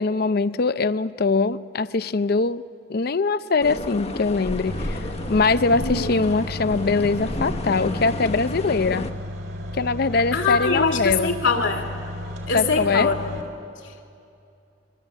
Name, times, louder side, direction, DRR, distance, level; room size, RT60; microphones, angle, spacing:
voice 1, 0.0-2.6 2.9-9.1 9.7-11.3 12.5-13.1, left 4 dB, 50° left, 14 dB, 0.6 m, -22 dB
sound 1, 3.6-9.1, left 1 dB, 30° left, 1.0 m, -31 dB
sound 2, 4.7-13.4, equal, 60° right, 3.7 m, -34 dB
voice 2, 5.8-6.1 10.3-11.9 12.5-13.3, left 5 dB, 80° left, 2 dB, 2.6 m, -23 dB
25.5 x 22.0 x 8.1 m, 2.5 s
head